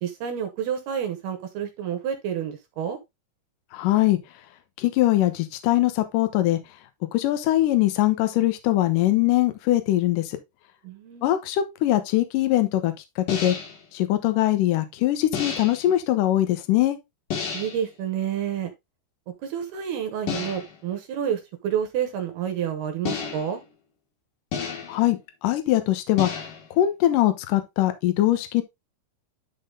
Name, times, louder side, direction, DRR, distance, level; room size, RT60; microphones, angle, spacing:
voice 1, 0.0-3.0 10.8-11.3 17.5-18.7 19.4-23.6, right 9 dB, 70° right, 2.7 m, -29 dB
voice 2, 3.7-4.2 4.8-6.6 7.1-10.4 11.2-13.6 13.9-17.0 24.9-26.4 26.8-28.6, left 14 dB, 85° left, 1.9 m, -22 dB
sound 1, 13.3-13.8 15.3-15.9 17.3-17.9 20.3-20.8 23.0-23.7 24.5-25.1 26.2-26.7, left 6 dB, 55° left, 2.8 m, -31 dB
11.5 x 3.9 x 3.7 m
omnidirectional pair, 5.3 m